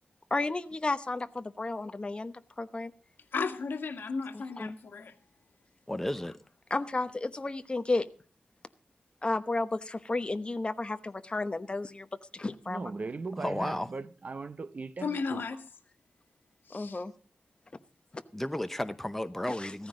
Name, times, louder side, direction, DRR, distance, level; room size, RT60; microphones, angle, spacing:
voice 1, 0.3-2.9 4.3-4.8 6.7-8.1 9.2-12.1 12.3-12.8 16.7-17.1 19.5-19.7, left 2 dB, 30° left, 1.0 m, -32 dB
voice 2, 3.3-5.1 15.0-15.6 16.7-17.0, left 4 dB, 80° left, 1.7 m, -34 dB
voice 3, 5.9-6.3 13.4-13.9 18.3-19.9, left 1 dB, 5° left, 0.8 m, -33 dB
voice 4, 12.7-15.5, right 3 dB, 45° right, 0.8 m, -38 dB
15.5 x 14.5 x 3.8 m
wide cardioid pair, 110°, 3 cm